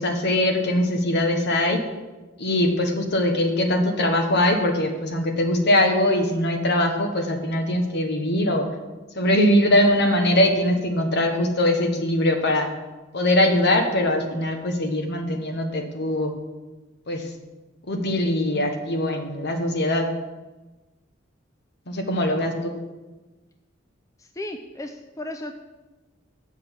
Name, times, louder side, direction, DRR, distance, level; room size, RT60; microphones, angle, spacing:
voice 1, 0.0-1.8 2.4-8.7 9.1-12.7 13.1-16.3 17.1-17.3 17.8-20.1 21.9-22.8, left 1 dB, 60° left, 4 dB, 1.3 m, -22 dB
voice 2, 24.2-25.5, left 1 dB, 15° left, 5 dB, 0.5 m, -35 dB
7.1 x 6.3 x 7.3 m, 1.2 s
head